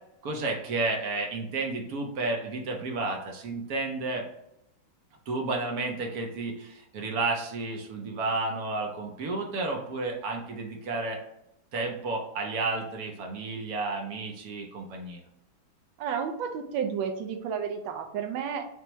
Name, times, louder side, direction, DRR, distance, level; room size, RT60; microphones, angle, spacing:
voice 1, 0.2-4.3 5.3-11.2 11.7-15.2, right 3 dB, 65° right, 2 dB, 1.0 m, -31 dB
voice 2, 16.0-18.7, right 7 dB, 80° right, 6 dB, 1.3 m, -31 dB
6.0 x 2.2 x 2.9 m, 0.82 s
omnidirectional pair, 2.2 m